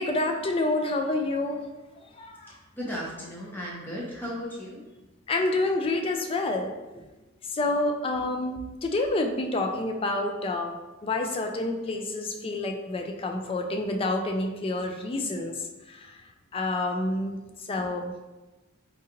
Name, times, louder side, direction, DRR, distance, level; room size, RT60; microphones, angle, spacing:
voice 1, 0.0-1.6 2.1-2.6 5.3-6.7 7.0-7.1 7.4-10.8 11.0-16.2 16.5-18.1, left 2 dB, 25° left, 3 dB, 0.3 m, -28 dB
voice 2, 2.5-4.8, equal, 10° left, -5 dB, 0.8 m, -36 dB
3.7 x 2.4 x 2.9 m, 1.1 s
head